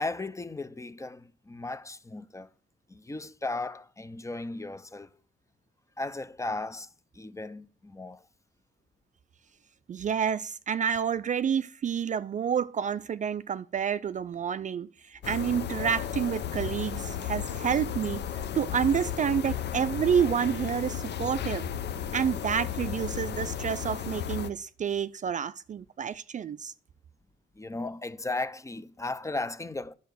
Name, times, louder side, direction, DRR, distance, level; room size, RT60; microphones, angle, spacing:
voice 1, 0.0-2.5 2.9-5.1 6.0-6.9 7.1-8.2 27.6-30.0, left 2 dB, 15° left, 0.6 m, -36 dB
voice 2, 9.9-18.2 18.5-21.7 22.1-26.7, right 8 dB, 40° right, 0.4 m, -29 dB
sound 1, 15.2-24.5, left 9 dB, 60° left, 0.8 m, -34 dB
10.0 x 6.8 x 6.4 m
cardioid pair, 90°, 20 cm